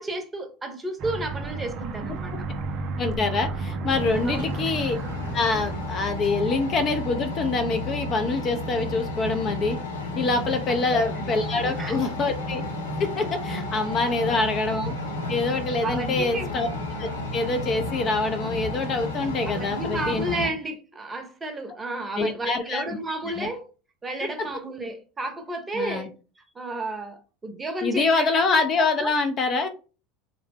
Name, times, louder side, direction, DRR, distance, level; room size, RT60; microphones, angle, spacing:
voice 1, 0.0-2.3 4.2-4.5 10.7-11.1 11.5-12.0 14.2-14.3 15.8-16.5 19.5-23.7 24.0-26.1 26.5-28.3 29.0-29.1, right 2 dB, 20° right, 0.7 m, -32 dB
Aircraft, 1.0-7.1, right 3 dB, 50° right, 0.4 m, -33 dB
voice 2, 3.0-5.0 5.3-9.8 10.2-12.6 13.0-14.9 15.3-16.7 17.0-20.2 22.2-22.8 23.4-23.5 25.7-26.1 27.8-29.7, left 3 dB, 40° left, 0.5 m, -25 dB
sound 1, 3.9-20.5, left 1 dB, 85° left, 0.8 m, -32 dB
2.7 x 2.0 x 3.3 m
hypercardioid pair, 80°, 0 cm